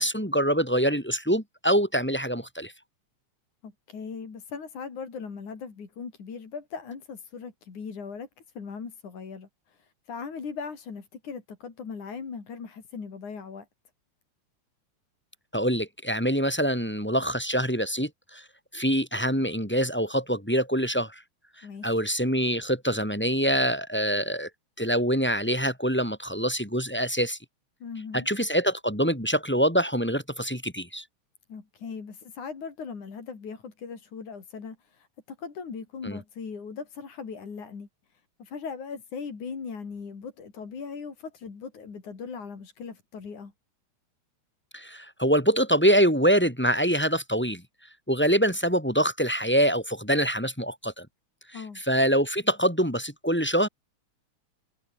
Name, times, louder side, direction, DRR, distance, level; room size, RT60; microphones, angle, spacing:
voice 1, 0.0-2.7 15.5-18.4 18.7-21.2 21.8-24.5 24.8-27.4 28.1-31.0 36.0-36.2 44.7-47.6 48.1-51.1 51.5-51.6 51.9-53.7, equal, 5° left, 3.6 m, -25 dB
voice 2, 3.6-8.3 8.6-13.7 21.6-21.9 27.8-28.3 31.5-37.9 38.4-43.5 51.5-51.8, left 5 dB, 80° left, 5.6 m, -39 dB
omnidirectional pair, 3.4 m